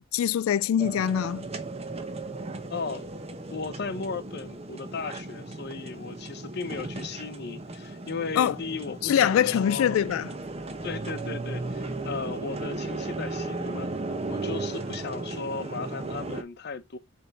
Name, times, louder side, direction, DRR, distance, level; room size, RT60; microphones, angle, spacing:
voice 1, 0.0-1.4 8.4-8.5 9.0-10.3, left 9 dB, 90° left, 0.3 m, -23 dB
sound 1, 0.8-16.4, right 2 dB, 30° right, 0.9 m, -36 dB
voice 2, 2.7-3.1 3.5-10.0 10.8-13.9 14.3-17.0, left 4 dB, 55° left, 0.8 m, -36 dB
7.5 x 3.5 x 4.0 m
head